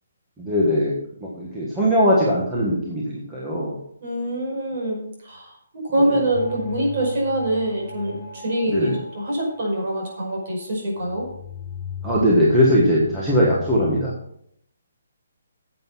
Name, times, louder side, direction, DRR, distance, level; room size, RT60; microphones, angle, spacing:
voice 1, 0.4-0.9 1.2-3.8 8.7-9.0 12.0-14.1, equal, 5° right, -6 dB, 1.4 m, -20 dB
voice 2, 4.0-11.2, right 1 dB, 40° right, -2 dB, 5.1 m, -25 dB
sound 1, 6.3-14.1, left 4 dB, 20° left, 4.7 m, -38 dB
10.0 x 8.0 x 5.6 m, 0.69 s
hypercardioid pair, 175°, 0 cm